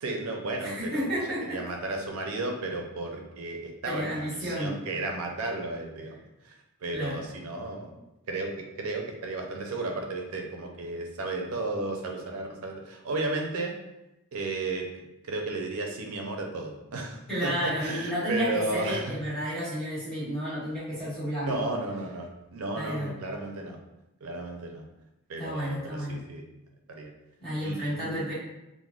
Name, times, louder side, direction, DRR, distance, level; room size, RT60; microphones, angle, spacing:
voice 1, 0.0-1.1 1.5-6.5 6.8-7.9 8.3-13.8 14.3-14.9 15.2-19.1 21.4-23.8 24.2-24.9 25.3-26.4 26.9-27.1 27.6-28.3, right 2 dB, 75° right, 2 dB, 0.5 m, -33 dB
voice 2, 0.6-1.6 3.9-4.7 6.9-7.2 17.3-21.7 22.8-23.1 25.4-26.2 27.4-28.3, equal, 5° left, -12 dB, 1.4 m, -31 dB
3.3 x 2.0 x 2.3 m, 0.91 s
head